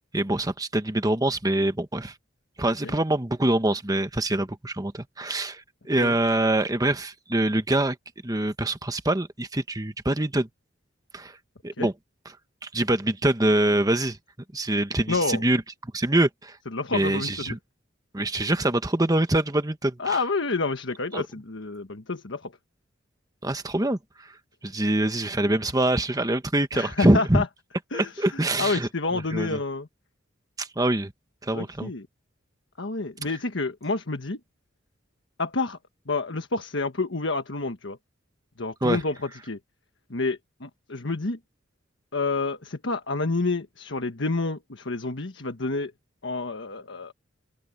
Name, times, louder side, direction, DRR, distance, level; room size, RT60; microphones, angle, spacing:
voice 1, 0.1-2.1 2.6-8.0 8.2-10.5 11.1-11.3 11.6-11.9 12.6-14.2 14.5-16.6 16.9-17.6 18.1-20.2 21.1-21.2 23.4-24.3 24.6-27.4 27.9-28.9 29.3-29.6 30.6-31.1 31.4-31.9 38.8-39.0, right 1 dB, 20° right, 1.3 m, -24 dB
voice 2, 15.1-15.4 16.7-17.5 20.0-22.5 26.7-27.4 27.9-29.9 31.5-32.1 32.8-34.4 35.4-35.8 36.1-38.0 38.6-39.1 39.4-39.6 40.1-41.4 42.1-45.9 46.2-47.1, left 3 dB, 70° left, 1.4 m, -29 dB
open air
head